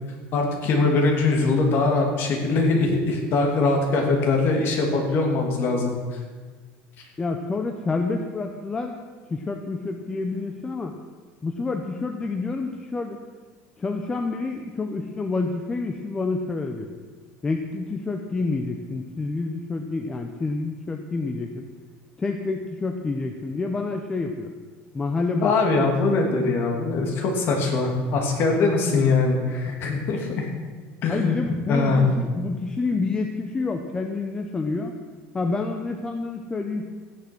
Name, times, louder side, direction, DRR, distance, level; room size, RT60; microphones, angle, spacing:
voice 1, 0.3-5.9 25.4-30.5 31.0-31.4 31.7-32.0, left 3 dB, 40° left, 1 dB, 2.8 m, -22 dB
voice 2, 7.2-9.0 9.3-10.9 11.4-13.2 13.8-16.9 17.4-21.7 22.2-24.5 24.9-25.9 31.1-35.0 35.3-36.9, left 3 dB, 15° left, 4 dB, 0.7 m, -28 dB
14.5 x 10.5 x 6.2 m, 1.4 s
cardioid pair, 170°, 6 cm